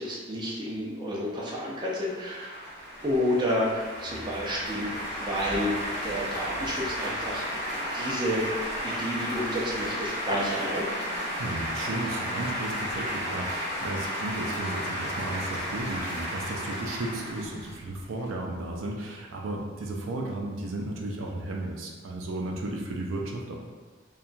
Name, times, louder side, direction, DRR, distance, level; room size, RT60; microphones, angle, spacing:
voice 1, 0.0-2.7 3.0-7.6 7.9-8.4 8.8-10.9, equal, 25° right, -5 dB, 0.4 m, -30 dB
sound 1, 1.6-18.3, equal, 40° right, 0.8 m, -33 dB
voice 2, 11.4-23.6, right 2 dB, 90° right, 0 dB, 0.4 m, -34 dB
2.8 x 2.2 x 2.5 m, 1.4 s
head